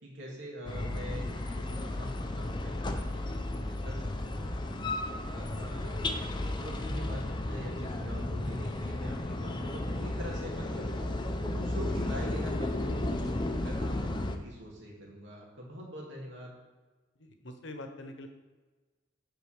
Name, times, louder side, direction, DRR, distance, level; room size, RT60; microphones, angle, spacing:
voice 1, 0.0-4.6 5.0-6.0 6.4-11.1 11.4-16.5, equal, 65° right, -2 dB, 2.3 m, -44 dB
sound 1, 0.7-14.4, left 1 dB, 25° left, 0.6 m, -34 dB
voice 2, 17.2-18.3, left 1 dB, 65° left, 6 dB, 1.0 m, -44 dB
8.5 x 4.1 x 6.6 m, 1.3 s
head